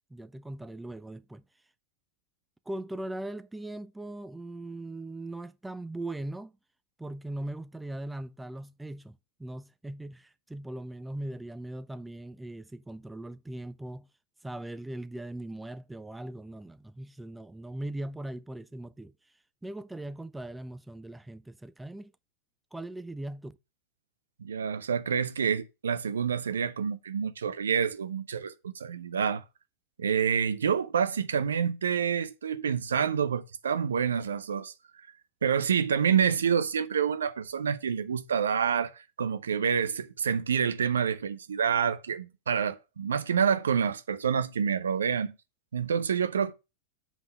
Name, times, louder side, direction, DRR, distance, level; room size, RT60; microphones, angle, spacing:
voice 1, 0.1-1.4 2.7-6.5 7.0-14.1 14.4-19.1 19.6-22.1 22.7-23.6, right 1 dB, 5° right, 0.4 m, -39 dB
voice 2, 24.4-29.4 30.0-34.7 35.4-45.3 45.7-46.5, right 7 dB, 70° right, 0.6 m, -28 dB
7.4 x 3.7 x 6.3 m
figure-of-eight pair, 90°, 0 cm